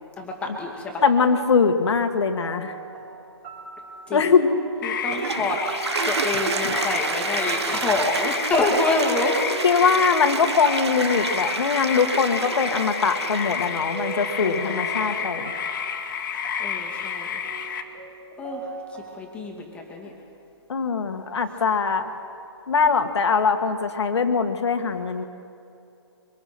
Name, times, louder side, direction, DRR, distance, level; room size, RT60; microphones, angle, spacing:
voice 1, 0.2-1.0 4.1-4.2 4.8-5.6 6.1-9.4 14.4-15.1 16.6-17.3 18.4-18.7 19.2-20.1, left 2 dB, 10° left, -1 dB, 2.3 m, -27 dB
voice 2, 1.0-2.7 4.1-4.5 6.3-6.8 9.6-15.5 20.7-22.1 22.7-25.2, left 5 dB, 70° left, 7 dB, 2.0 m, -22 dB
sound 1, 2.2-19.3, right 4 dB, 25° right, 4.6 m, -41 dB
sound 2, 4.8-17.8, left 7 dB, 45° left, 1.9 m, -30 dB
Toilet flush, 4.9-15.2, right 6 dB, 70° right, 1.1 m, -30 dB
25.0 x 24.5 x 4.5 m, 2.6 s
hypercardioid pair, 160°, 15 cm